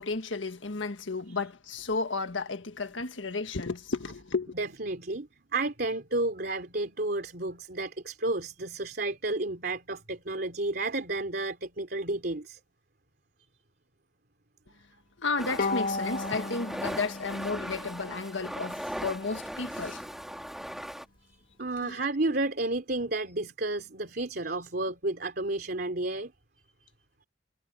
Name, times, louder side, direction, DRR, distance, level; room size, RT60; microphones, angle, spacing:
voice 1, 0.0-4.5 15.2-20.0 21.8-22.1, left 3 dB, 85° left, 1.7 m, -33 dB
voice 2, 4.5-12.6 21.3-26.3, right 2 dB, 55° right, 3.2 m, -31 dB
sound 1, 15.4-21.1, equal, ahead, 2.7 m, -39 dB
Bowed string instrument, 15.6-18.9, left 3 dB, 50° left, 1.8 m, -35 dB
head